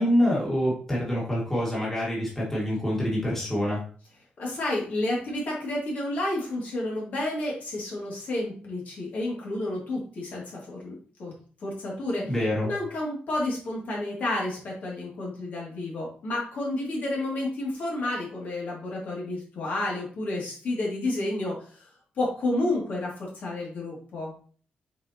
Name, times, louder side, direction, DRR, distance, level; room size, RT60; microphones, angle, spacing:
voice 1, 0.0-3.8 12.3-12.7, equal, 10° left, -5 dB, 2.0 m, -26 dB
voice 2, 4.4-11.3 11.6-12.3 12.6-21.8 22.2-24.3, left 2 dB, 60° left, -3 dB, 2.4 m, -30 dB
7.2 x 4.6 x 2.9 m, 0.44 s
wide cardioid pair, 180°, 3 cm